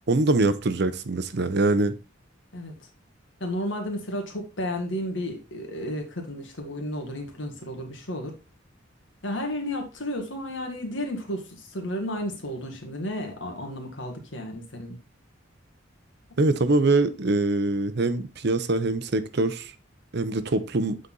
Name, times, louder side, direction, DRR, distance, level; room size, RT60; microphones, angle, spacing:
voice 1, 0.1-1.9 16.4-19.7 20.1-21.0, right 2 dB, 60° right, 0.8 m, -23 dB
voice 2, 2.5-2.9 3.4-8.3 9.2-15.0, left 1 dB, 70° left, 2.0 m, -32 dB
8.3 x 4.1 x 3.9 m
head